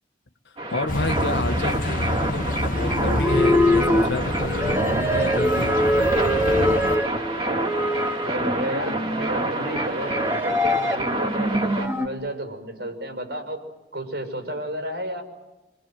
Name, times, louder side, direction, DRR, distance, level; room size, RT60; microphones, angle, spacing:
voice 1, 0.4-6.7, left 2 dB, 90° left, 8 dB, 1.4 m, -31 dB
sound 1, 0.6-11.9, right 2 dB, 35° right, 2.6 m, -28 dB
sound 2, 0.9-7.0, left 1 dB, 50° left, 1.4 m, -28 dB
sound 3, 2.7-12.1, left 1 dB, 15° right, 2.1 m, -24 dB
voice 2, 8.2-13.6 13.9-15.2, right 1 dB, 75° right, 6 dB, 6.2 m, -32 dB
26.0 x 26.0 x 7.7 m, 1.1 s
head